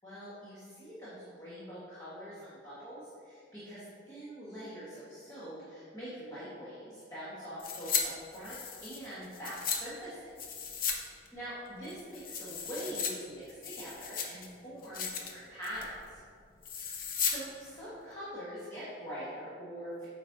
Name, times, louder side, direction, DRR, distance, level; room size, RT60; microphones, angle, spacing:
voice 1, 0.0-10.3 11.0-16.2 16.9-20.0, equal, 20° left, -11 dB, 1.4 m, -44 dB
sound 1, 7.6-8.0 8.3-9.8 10.4-11.0 11.3-11.4 11.8-13.1 13.5-14.5 14.8-15.3 15.6-15.9 16.6-17.4 17.7-17.8, left 7 dB, 50° left, 0.6 m, -35 dB
8.2 x 5.0 x 2.7 m, 2.3 s
head